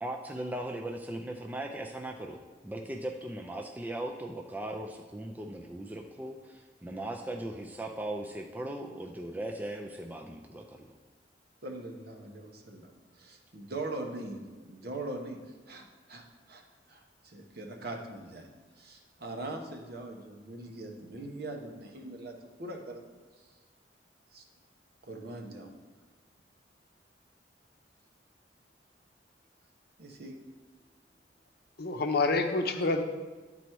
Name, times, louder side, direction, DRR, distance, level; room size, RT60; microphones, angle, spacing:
voice 1, 0.0-2.4 2.6-10.9, right 1 dB, 10° right, 2 dB, 0.4 m, -38 dB
voice 2, 11.6-14.4 14.7-16.6 16.9-18.5 18.8-23.0 23.4-23.6 24.3-24.4 25.0-25.7 30.0-30.4, right 2 dB, 60° right, 2 dB, 1.1 m, -41 dB
voice 3, 31.8-33.0, left 3 dB, 60° left, 5 dB, 0.7 m, -27 dB
11.0 x 4.1 x 4.6 m, 1.3 s
head